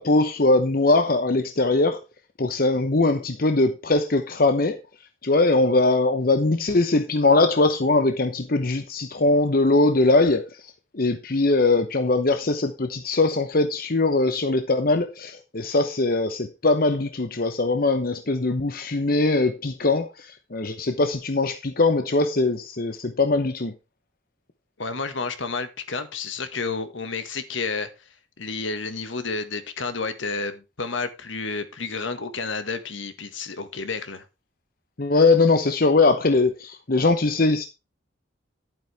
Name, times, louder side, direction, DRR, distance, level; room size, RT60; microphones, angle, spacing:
voice 1, 0.0-2.0 2.4-4.8 5.2-10.7 10.9-23.7 35.0-37.7, left 2 dB, 45° left, 0.9 m, -21 dB
voice 2, 24.8-28.1 28.4-34.2, left 4 dB, 70° left, 1.6 m, -30 dB
11.5 x 9.0 x 3.4 m
head